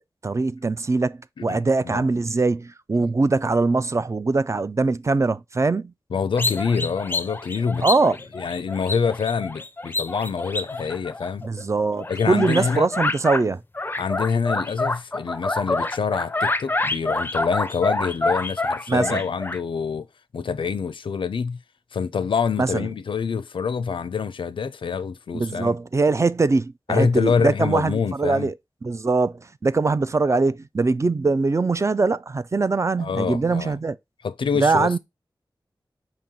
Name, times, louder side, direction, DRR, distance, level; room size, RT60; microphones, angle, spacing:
voice 1, 0.2-5.9 7.8-8.2 11.4-13.6 18.9-19.2 22.6-22.9 25.3-28.5 28.8-34.0 34.5-35.0, right 3 dB, 35° right, 0.3 m, -22 dB
voice 2, 1.4-2.1 3.0-3.1 6.1-7.9 8.3-11.4 12.1-12.9 14.0-20.1 20.3-21.6 21.9-25.7 26.9-28.5 33.0-33.8 34.2-35.0, left 6 dB, 85° left, 0.4 m, -26 dB
sound 1, 6.4-11.6 12.0-13.4 13.7-19.6, left 2 dB, 25° left, 0.4 m, -27 dB
5.1 x 2.8 x 3.7 m
wide cardioid pair, 60°, 8 cm